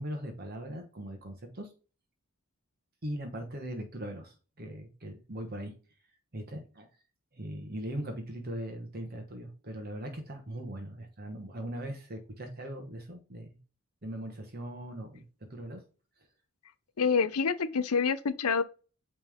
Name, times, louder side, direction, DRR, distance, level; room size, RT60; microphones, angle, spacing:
voice 1, 0.0-1.7 3.0-5.7 6.3-6.9 7.3-13.6 14.0-15.2 15.5-15.8, right 1 dB, 45° right, 1.1 m, -40 dB
voice 2, 17.0-18.6, left 5 dB, 85° left, 0.7 m, -27 dB
8.9 x 3.4 x 3.5 m
head